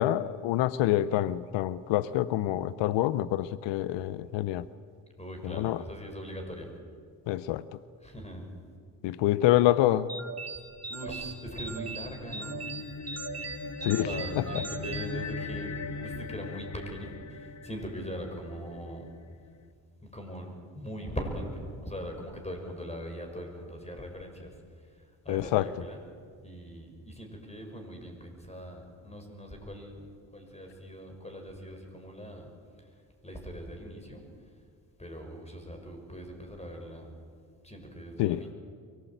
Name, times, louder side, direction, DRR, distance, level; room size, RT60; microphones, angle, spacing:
voice 1, 0.0-4.6 5.4-5.8 7.3-7.6 9.0-10.1 13.8-14.1 14.4-14.5 25.3-25.7 38.2-38.4, left 14 dB, 90° left, 17 dB, 0.7 m, -26 dB
voice 2, 5.2-6.7 8.0-8.5 10.9-12.6 14.0-19.1 20.0-24.6 25.2-26.0 26.4-32.5 33.2-34.2 35.0-37.1 37.6-38.5, equal, 15° left, 3 dB, 6.7 m, -41 dB
sound 1, 10.1-15.9, right 4 dB, 35° right, 2.1 m, -40 dB
sound 2, 12.1-18.8, left 4 dB, 40° left, 1.3 m, -39 dB
23.5 x 19.0 x 9.2 m, 2.1 s
supercardioid pair, 60°, 42 cm